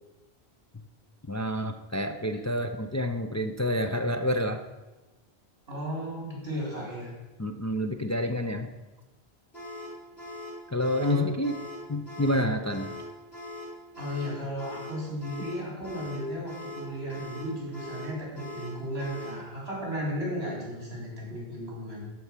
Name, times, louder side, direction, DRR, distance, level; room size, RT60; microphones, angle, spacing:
voice 1, 1.3-4.6 7.4-8.7 10.7-11.6 11.9-13.0, left 1 dB, 20° left, 5 dB, 0.4 m, -28 dB
voice 2, 5.7-7.1 11.0-11.3 14.0-22.0, equal, 70° right, -3 dB, 4.3 m, -35 dB
sound 1, 9.5-19.5, left 1 dB, 75° left, 3.1 m, -41 dB
13.0 x 4.7 x 7.3 m, 1.1 s
omnidirectional pair, 1.1 m